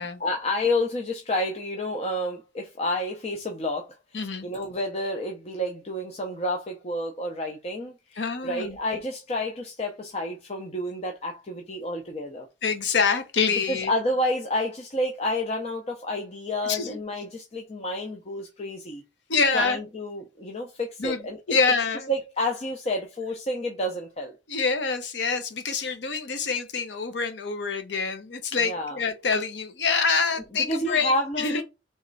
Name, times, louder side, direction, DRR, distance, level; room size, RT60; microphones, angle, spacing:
voice 1, 0.2-12.5 13.7-19.0 19.5-21.4 22.1-24.3 28.6-29.0 30.7-31.6, left 1 dB, 35° left, 0.6 m, -29 dB
voice 2, 4.1-4.5 8.2-8.8 12.6-13.9 16.6-17.0 19.3-19.8 21.0-22.1 24.5-31.6, left 5 dB, 75° left, 0.8 m, -26 dB
3.5 x 3.1 x 3.9 m
head